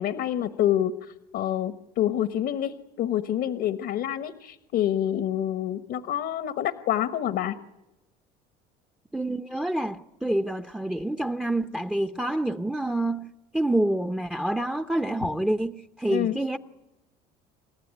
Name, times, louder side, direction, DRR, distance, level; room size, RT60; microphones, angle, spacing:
voice 1, 0.0-7.5 16.1-16.4, left 11 dB, 60° left, 1.2 m, -27 dB
voice 2, 9.1-16.6, right 1 dB, 5° right, 0.8 m, -27 dB
28.5 x 14.5 x 9.6 m
supercardioid pair, 80°, 20 cm